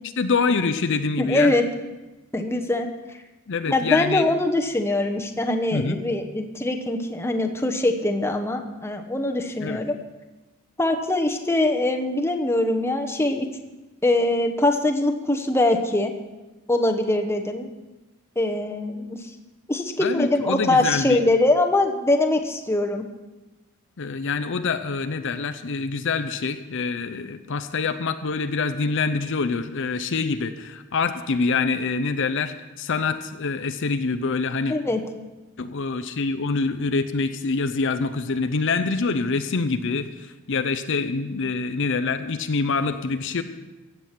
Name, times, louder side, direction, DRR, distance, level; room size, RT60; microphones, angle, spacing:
voice 1, 0.2-1.5 3.5-4.3 5.7-6.0 9.6-9.8 20.0-21.2 24.0-34.8 35.6-43.4, left 4 dB, 55° left, 8 dB, 0.6 m, -25 dB
voice 2, 1.2-1.6 2.3-2.9 3.7-10.0 10.8-13.5 14.0-16.1 16.7-17.7 18.4-19.3 19.7-23.0 34.7-35.0, left 2 dB, 10° left, 4 dB, 0.9 m, -22 dB
15.5 x 8.3 x 5.8 m, 1.1 s
head